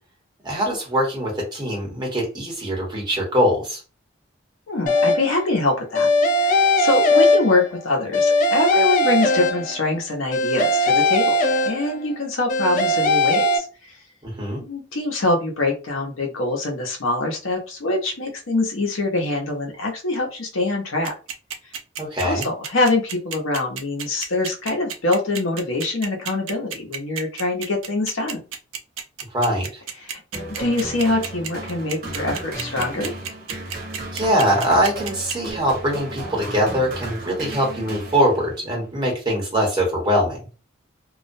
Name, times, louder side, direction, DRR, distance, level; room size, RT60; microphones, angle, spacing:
voice 1, 0.4-3.8 14.2-14.6 22.0-22.4 29.3-29.7 34.1-40.4, equal, 20° right, -2 dB, 1.0 m, -22 dB
voice 2, 4.7-6.1 6.4-11.3 11.6-13.9 14.6-21.1 22.2-28.4 30.0-30.2 30.6-33.1, left 2 dB, 85° left, 1 dB, 0.8 m, -24 dB
sound 1, 4.9-5.4 5.9-7.8 8.1-9.9 10.3-12.1 12.5-13.6, left 2 dB, 40° left, 0.3 m, -19 dB
sound 2, 21.0-35.5, right 7 dB, 80° right, 0.5 m, -31 dB
sound 3, 30.3-38.7, right 2 dB, 45° right, 0.7 m, -34 dB
2.3 x 2.1 x 2.5 m, 0.34 s
head